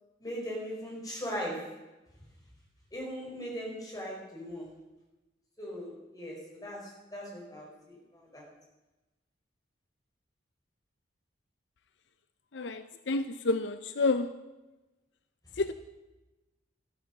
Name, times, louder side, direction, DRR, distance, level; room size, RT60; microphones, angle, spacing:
voice 1, 0.2-1.8 2.9-4.7 5.6-8.5 15.5-15.6, equal, 20° left, -3 dB, 5.2 m, -39 dB
voice 2, 12.5-14.3 15.6-15.7, left 3 dB, 70° left, 11 dB, 0.6 m, -29 dB
13.5 x 13.0 x 6.6 m, 1.1 s
head